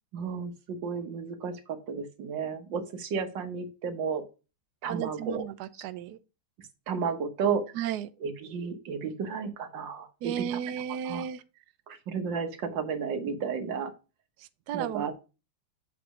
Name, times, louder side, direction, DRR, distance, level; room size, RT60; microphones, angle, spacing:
voice 1, 0.1-4.2 4.8-5.4 6.9-7.6 8.2-10.6 11.0-11.3 11.9-13.9 14.7-15.1, right 6 dB, 60° right, 1.7 m, -32 dB
voice 2, 4.9-6.2 7.7-8.1 10.2-11.4 14.7-15.1, right 10 dB, 90° right, 0.8 m, -34 dB
7.7 x 4.0 x 4.8 m
omnidirectional pair, 2.4 m